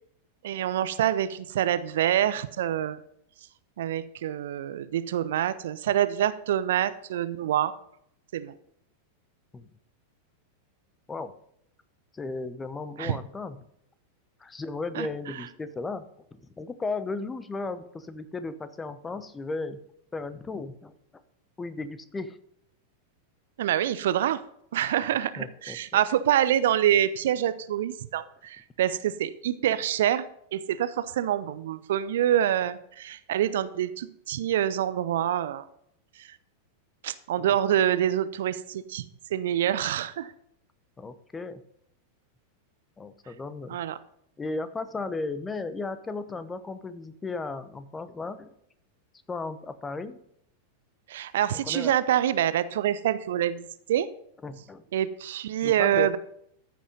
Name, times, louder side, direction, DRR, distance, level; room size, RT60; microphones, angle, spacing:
voice 1, 0.4-3.0 3.8-7.7 8.3-8.5 13.0-13.2 14.9-15.1 23.6-24.4 24.7-30.3 30.5-35.7 36.2-36.3 37.0-39.0 39.3-40.3 43.7-44.0 51.1-54.1 54.9-56.2, right 11 dB, 60° right, 14 dB, 0.6 m, -26 dB
voice 2, 12.1-13.6 14.4-19.8 20.1-20.9 21.6-22.4 25.4-26.0 37.4-37.6 41.0-41.6 43.0-43.8 44.4-48.5 49.3-50.2 51.5-52.0 54.4-54.8 55.6-56.2, left 3 dB, 15° left, 13 dB, 0.8 m, -35 dB
14.0 x 6.2 x 5.4 m, 0.73 s
figure-of-eight pair, 90°, 0 cm